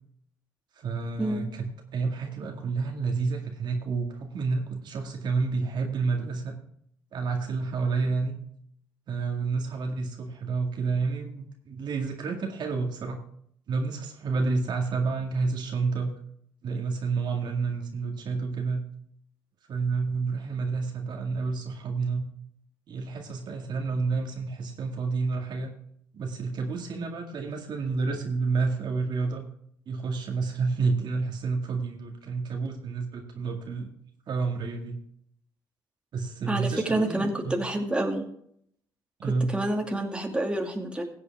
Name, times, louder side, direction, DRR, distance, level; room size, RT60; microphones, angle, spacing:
voice 1, 0.8-6.5 7.1-8.3 9.1-13.2 13.7-16.1 16.6-18.8 19.7-22.2 22.9-25.7 26.1-29.4 29.9-33.9 34.3-35.0 36.1-37.7 39.2-39.6, right 4 dB, 60° right, 2 dB, 2.0 m, -29 dB
voice 2, 36.5-38.3 39.5-41.0, right 1 dB, 10° right, 2 dB, 2.4 m, -28 dB
16.0 x 7.8 x 3.5 m, 0.67 s
supercardioid pair, 60°, 8 cm